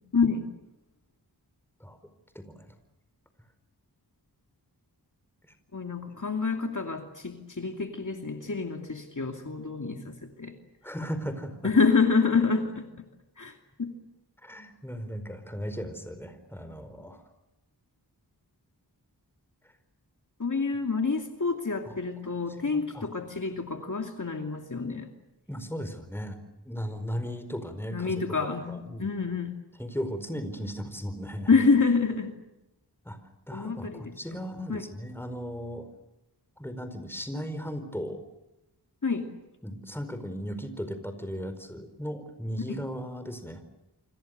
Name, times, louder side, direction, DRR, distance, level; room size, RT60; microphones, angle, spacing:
voice 1, 0.1-0.4 5.7-10.5 11.6-12.9 13.4-13.9 20.4-25.1 27.9-29.5 31.5-32.3 33.5-34.1 34.7-34.9 39.0-39.3 42.7-42.8, left 4 dB, 45° left, 4 dB, 2.6 m, -27 dB
voice 2, 2.3-2.7 10.8-11.7 14.4-17.2 21.8-21.9 22.7-23.1 25.5-26.4 26.6-28.1 28.4-29.1 29.8-31.5 33.0-33.2 33.5-35.8 36.6-38.2 39.6-43.6, equal, 5° left, 9 dB, 4.7 m, -36 dB
29.0 x 26.0 x 6.7 m, 0.97 s
wide cardioid pair, 80°, 40 cm